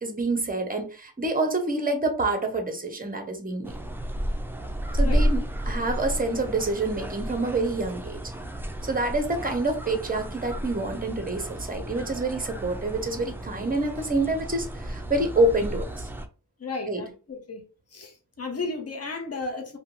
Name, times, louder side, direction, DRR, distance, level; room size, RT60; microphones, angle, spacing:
voice 1, 0.0-3.7 4.9-8.2 8.8-15.9 16.9-17.0, right 2 dB, 20° right, 0.7 m, -27 dB
sound 1, 3.6-16.3, equal, 5° right, 0.3 m, -32 dB
voice 2, 16.6-17.6 17.9-19.8, left 3 dB, 40° left, 0.8 m, -34 dB
2.5 x 2.2 x 2.9 m
wide cardioid pair, 60°, 40 cm